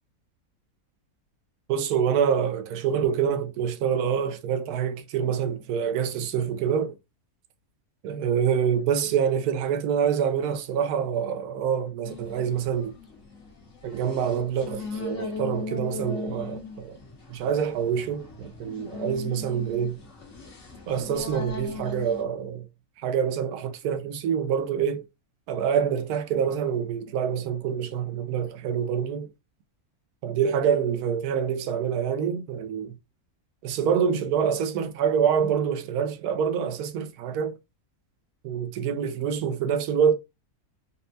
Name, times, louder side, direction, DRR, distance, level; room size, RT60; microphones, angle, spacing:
voice 1, 1.7-7.0 8.0-12.9 13.8-17.0 17.3-20.0 20.9-22.6 23.0-25.0 25.5-29.3 30.2-32.9 33.6-37.6 38.4-40.1, right 7 dB, 85° right, 1.1 m, -26 dB
sound 1, 12.0-22.2, left 4 dB, 55° left, 1.5 m, -39 dB
4.2 x 2.1 x 2.6 m
omnidirectional pair, 1.6 m